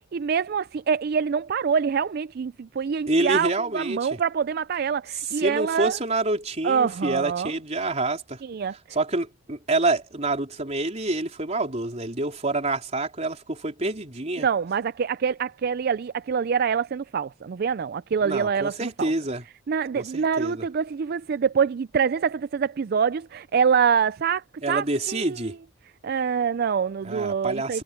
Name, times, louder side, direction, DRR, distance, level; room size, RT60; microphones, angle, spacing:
voice 1, 0.1-6.0 6.6-7.5 8.4-8.8 14.4-19.1 19.7-25.6 26.0-27.8, right 6 dB, 55° right, 0.4 m, -25 dB
voice 2, 3.1-4.2 5.3-8.4 8.9-14.5 18.2-19.4 19.9-20.6 24.6-25.6 27.0-27.8, right 2 dB, 35° right, 3.7 m, -27 dB
head